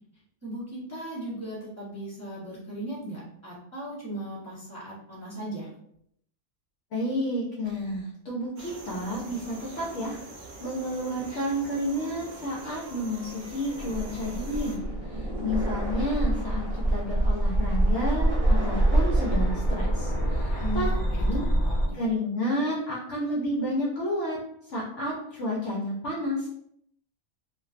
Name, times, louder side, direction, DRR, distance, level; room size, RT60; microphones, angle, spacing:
voice 1, 0.4-5.8 20.5-22.0, right 1 dB, 15° right, -10 dB, 0.6 m, -37 dB
voice 2, 6.9-10.2 10.6-14.8 15.1-16.6 16.9-20.9 21.2-21.5 21.9-24.4 24.7-26.5, equal, 65° left, -4 dB, 0.9 m, -30 dB
sound 1, 8.6-14.8, right 3 dB, 80° right, 0.4 m, -44 dB
sound 2, 13.5-21.9, right 1 dB, 35° left, 1.0 m, -25 dB
sound 3, 13.7-19.9, right 1 dB, 50° right, 0.9 m, -40 dB
2.5 x 2.2 x 2.3 m, 0.72 s
omnidirectional pair, 1.4 m